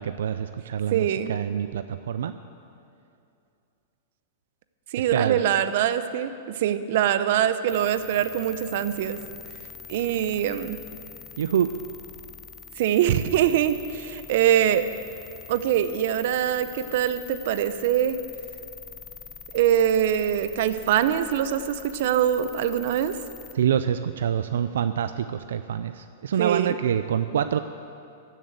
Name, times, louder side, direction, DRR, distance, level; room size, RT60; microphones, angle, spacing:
voice 1, 0.0-2.3 5.1-5.4 11.4-11.7 23.5-27.6, right 9 dB, 85° right, 11 dB, 0.4 m, -26 dB
voice 2, 0.9-1.4 4.9-9.2 9.9-10.8 12.8-14.9 15.5-18.2 19.5-23.2 26.4-26.8, right 10 dB, 60° right, 12 dB, 0.7 m, -23 dB
sound 1, 7.7-23.6, left 7 dB, 20° left, 0.6 m, -44 dB
15.0 x 7.4 x 8.1 m, 2.6 s
supercardioid pair, 150°, 0 cm